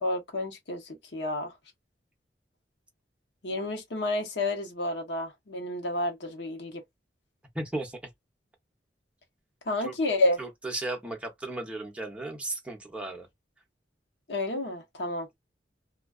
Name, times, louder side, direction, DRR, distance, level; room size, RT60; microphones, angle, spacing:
voice 1, 0.0-1.5 3.4-6.8 9.7-10.4 14.3-15.3, left 2 dB, 75° left, 0.9 m, -30 dB
voice 2, 7.5-8.0 9.8-9.9 10.4-13.3, right 2 dB, 5° right, 0.7 m, -35 dB
2.4 x 2.3 x 2.2 m
head